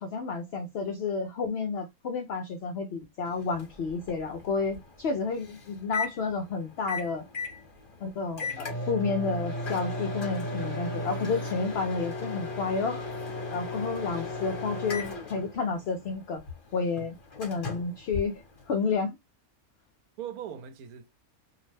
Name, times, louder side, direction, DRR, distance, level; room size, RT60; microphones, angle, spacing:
voice 1, 0.0-7.2 8.0-13.0 13.5-16.4 16.7-19.2, left 4 dB, 65° left, 0.7 m, -31 dB
Microwave oven, 3.3-18.9, left 2 dB, 40° left, 1.2 m, -36 dB
voice 2, 8.4-8.9 20.2-21.1, right 8 dB, 85° right, 1.1 m, -42 dB
2.8 x 2.1 x 3.1 m
omnidirectional pair, 1.5 m